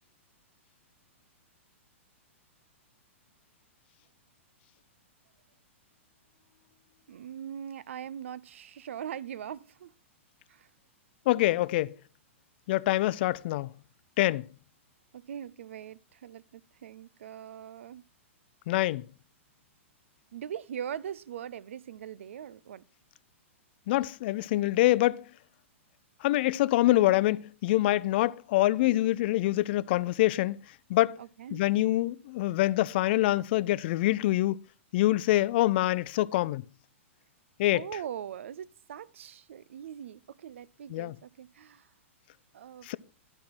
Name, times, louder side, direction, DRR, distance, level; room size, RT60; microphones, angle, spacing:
voice 1, 7.1-9.9 10.5-10.7 15.1-18.0 20.3-22.8 31.2-31.6 37.7-41.9 42.5-43.0, right 9 dB, 70° right, 0.4 m, -41 dB
voice 2, 11.3-12.0 12.7-13.7 14.2-14.5 18.7-19.0 23.9-25.2 26.2-30.6 30.9-31.2 31.5-34.6 34.9-36.6 37.6-37.9 40.9-41.2 42.8-43.0, left 16 dB, 50° left, 0.4 m, -25 dB
10.5 x 4.3 x 6.0 m
hypercardioid pair, 115°, 7 cm